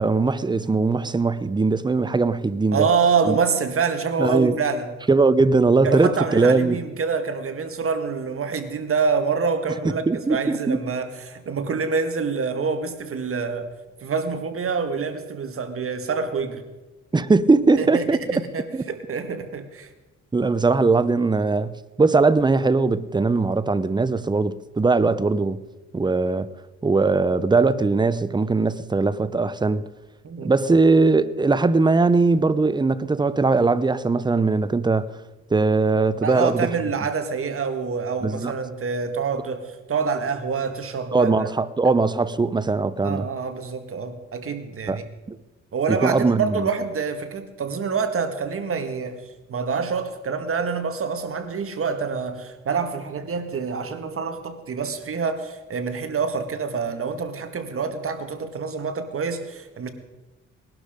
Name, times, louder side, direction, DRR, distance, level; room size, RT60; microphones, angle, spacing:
voice 1, 0.0-2.9 3.3-3.4 4.2-4.6 5.1-6.8 10.1-10.8 17.1-18.4 18.7-18.8 20.3-25.6 25.9-26.5 26.8-29.9 30.4-35.1 35.5-36.7 38.2-38.5 41.1-43.3 44.9-45.0 45.3-45.4 45.9-46.7, right 3 dB, 15° right, 0.7 m, -20 dB
voice 2, 2.7-4.9 5.8-13.7 14.0-16.6 17.8-18.0 18.3-19.9 30.2-30.5 36.2-41.5 43.0-45.0 45.7-59.9, right 5 dB, 45° right, 1.9 m, -26 dB
19.0 x 12.0 x 5.1 m
cardioid pair, 90°, 30 cm